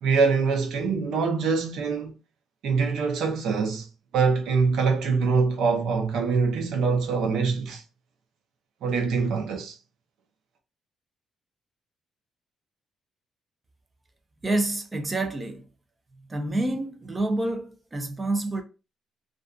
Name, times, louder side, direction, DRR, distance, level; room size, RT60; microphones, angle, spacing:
voice 1, 0.0-2.1 2.6-3.9 4.1-7.8 8.8-9.7, right 5 dB, 75° right, 0.7 m, -24 dB
voice 2, 14.4-15.7 16.3-18.6, right 2 dB, 25° right, 0.5 m, -28 dB
2.4 x 2.4 x 2.3 m
cardioid pair, 90°, 0 cm